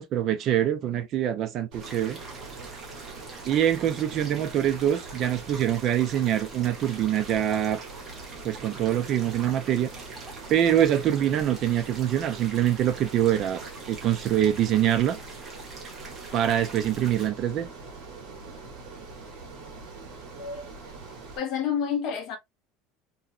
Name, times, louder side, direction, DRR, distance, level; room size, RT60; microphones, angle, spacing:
voice 1, 0.0-2.2 3.5-7.9 8.4-9.9 10.5-13.6 13.9-15.2 16.3-17.7, right 11 dB, 35° right, 0.3 m, -24 dB
Ocean, 1.7-21.4, right 4 dB, 50° right, 1.3 m, -43 dB
sound 1, 1.8-17.3, right 2 dB, 15° right, 0.9 m, -45 dB
voice 2, 21.4-22.4, left 7 dB, 40° left, 0.8 m, -29 dB
2.9 x 2.7 x 2.5 m
cardioid pair, 175°, 0 cm